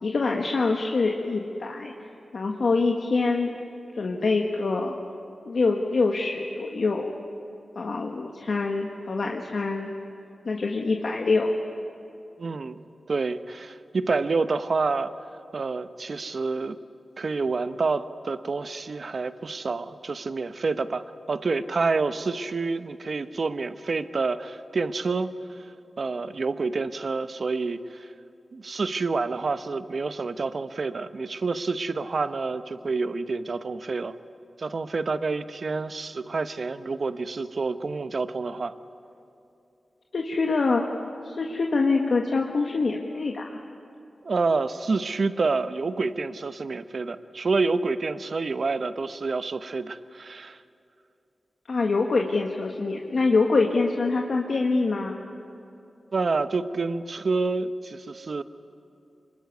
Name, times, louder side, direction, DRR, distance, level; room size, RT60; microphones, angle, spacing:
voice 1, 0.0-1.9 2.3-3.5 3.9-4.9 5.4-7.1 7.7-9.9 10.4-11.5 40.1-40.9 41.2-43.6 51.7-55.2, left 3 dB, 70° left, 1 dB, 1.7 m, -25 dB
voice 2, 12.4-12.8 13.1-15.1 15.5-16.8 17.2-25.3 26.0-28.1 28.5-34.2 34.6-38.7 44.2-50.6 56.1-58.4, right 4 dB, 60° right, 11 dB, 1.0 m, -28 dB
25.0 x 21.5 x 9.5 m, 2.6 s
cardioid pair, 60°, 0 cm